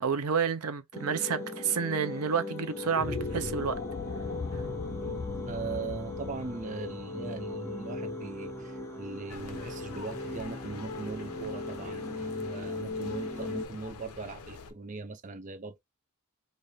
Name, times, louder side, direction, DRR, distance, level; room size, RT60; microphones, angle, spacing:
voice 1, 0.0-3.8, right 6 dB, 85° right, 0.7 m, -30 dB
sound 1, 0.9-13.6, left 2 dB, 10° left, 1.0 m, -38 dB
sound 2, 2.8-9.2, left 3 dB, 45° left, 0.5 m, -39 dB
voice 2, 5.4-15.8, right 4 dB, 35° right, 0.5 m, -40 dB
sound 3, 9.3-14.7, left 5 dB, 90° left, 0.7 m, -46 dB
3.2 x 2.5 x 4.2 m
head